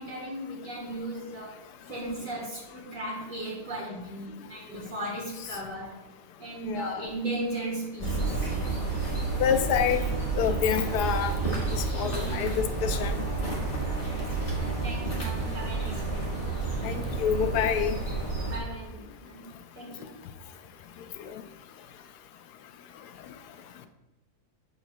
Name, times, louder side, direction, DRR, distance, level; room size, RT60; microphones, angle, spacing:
voice 1, 0.0-1.6 1.9-5.9 6.4-8.5 12.0-12.6 14.1-16.3 18.4-19.5 19.8-20.1, right 1 dB, 60° right, -3 dB, 1.8 m, -37 dB
voice 2, 6.7-7.1 9.4-10.0 10.4-11.3 11.7-13.3 16.8-18.0 21.2-21.4, left 8 dB, 90° left, 9 dB, 1.2 m, -27 dB
sound 1, 8.0-18.6, right 3 dB, 35° left, 1.6 m, -30 dB
12.5 x 4.4 x 2.2 m, 1.1 s
omnidirectional pair, 1.7 m